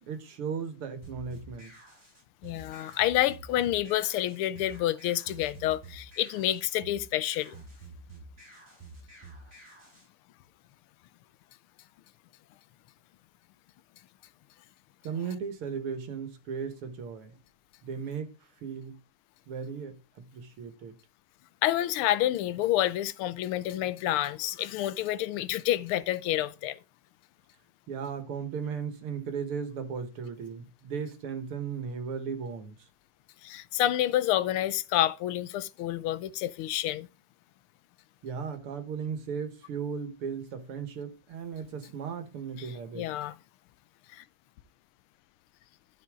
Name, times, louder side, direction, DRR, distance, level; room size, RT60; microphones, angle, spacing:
voice 1, 0.1-1.7 15.0-17.4 17.8-18.3 18.6-19.0 19.5-20.9 27.9-32.9 38.2-43.1, right 6 dB, 85° right, 2.3 m, -36 dB
sound 1, 1.0-10.1, right 2 dB, 20° right, 5.1 m, -49 dB
voice 2, 2.4-7.6 21.6-26.8 33.4-37.1 43.0-43.4 44.1-44.2, left 13 dB, 85° left, 1.5 m, -28 dB
12.0 x 5.5 x 3.6 m
omnidirectional pair, 2.4 m